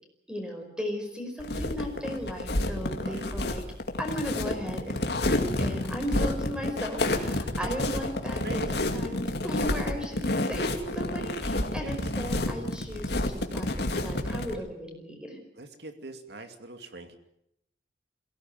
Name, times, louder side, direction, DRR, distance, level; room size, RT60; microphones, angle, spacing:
voice 1, 0.3-3.6 4.0-15.4, equal, 5° right, 4 dB, 4.9 m, -36 dB
sound 1, 1.4-14.5, left 1 dB, 65° left, 2.4 m, -29 dB
voice 2, 8.4-8.8 11.8-12.0 14.5-14.6 15.6-17.2, right 2 dB, 65° right, 7 dB, 2.6 m, -43 dB
22.5 x 17.0 x 9.2 m, 0.78 s
head